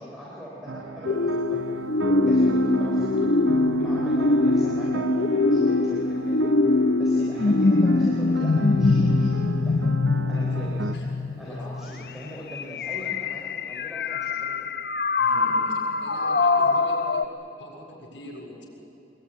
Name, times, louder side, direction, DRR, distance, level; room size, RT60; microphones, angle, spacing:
voice 1, 0.0-1.7 2.3-3.2 3.8-6.5 6.9-9.9 10.3-10.9 11.4-14.6 15.4-15.5 16.6-16.8, equal, ahead, -6 dB, 3.5 m, -42 dB
sound 1, 0.7-10.9, right 3 dB, 85° right, 0.8 m, -34 dB
sound 2, 1.1-17.2, left 3 dB, 55° left, 0.7 m, -23 dB
voice 2, 15.2-17.3 17.6-18.6, left 1 dB, 80° left, -3 dB, 7.2 m, -43 dB
23.5 x 22.5 x 9.9 m, 2.8 s
head